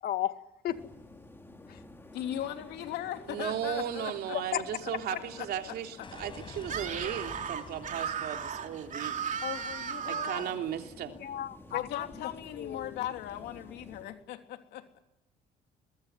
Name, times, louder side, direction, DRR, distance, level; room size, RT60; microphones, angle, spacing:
voice 1, 0.0-0.4 0.6-0.8 1.7-1.8 4.5-4.6 11.1-12.1 12.6-13.0, left 12 dB, 65° left, 9 dB, 2.0 m, -34 dB
sound 1, 0.7-14.0, left 2 dB, 15° left, 4.4 m, -52 dB
voice 2, 2.1-4.4 4.8-6.1 9.4-10.5 11.7-15.0, left 12 dB, 80° left, 5 dB, 3.2 m, -39 dB
voice 3, 3.3-9.1 10.1-11.2, right 10 dB, 70° right, 4 dB, 3.2 m, -36 dB
sound 2, 6.0-10.8, left 4 dB, 30° left, 4.8 m, -49 dB
Screaming, 6.6-10.6, right 7 dB, 50° right, 2.8 m, -36 dB
22.5 x 22.0 x 9.4 m, 0.97 s
cardioid pair, 110°, 17 cm